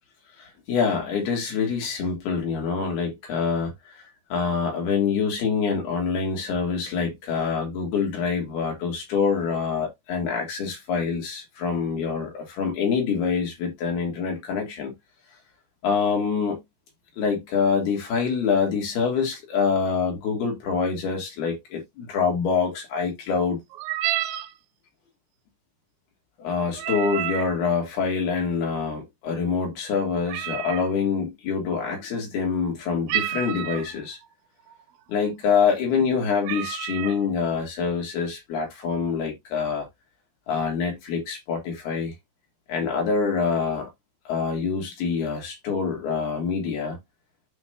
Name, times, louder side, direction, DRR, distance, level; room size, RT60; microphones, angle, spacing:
voice 1, 0.4-3.7 4.3-14.9 15.8-16.6 17.2-23.6 26.4-34.2 35.1-39.9 40.5-42.1 42.7-43.9 44.3-47.0, left 5 dB, 85° left, 5.2 m, -25 dB
sound 1, 23.7-24.5 26.7-27.5 30.3-30.9 33.1-33.9 34.7-34.8 35.2-35.5 36.0-36.1 36.4-37.2, right 13 dB, 80° right, 2.4 m, -29 dB
12.0 x 4.2 x 2.8 m
omnidirectional pair, 4.4 m